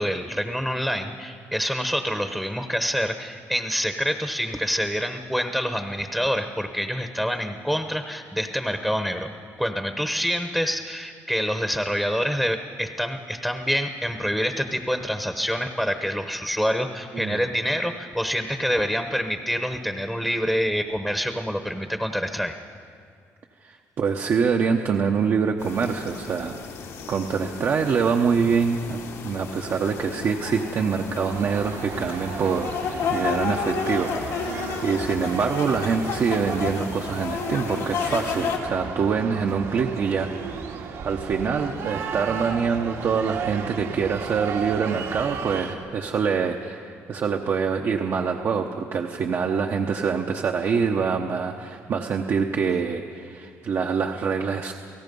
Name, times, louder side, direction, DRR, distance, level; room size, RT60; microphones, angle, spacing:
voice 1, 0.0-9.3 9.6-22.5, equal, ahead, 6 dB, 1.0 m, -26 dB
voice 2, 23.6-26.5 27.1-29.0 29.2-40.3 40.6-54.7, right 6 dB, 50° right, 2 dB, 1.0 m, -25 dB
sound 1, 25.6-38.6, left 5 dB, 85° left, 3.2 m, -32 dB
sound 2, 31.3-45.8, right 6 dB, 80° right, 2.2 m, -35 dB
29.5 x 17.5 x 5.4 m, 2.3 s
cardioid pair, 125°, 5 cm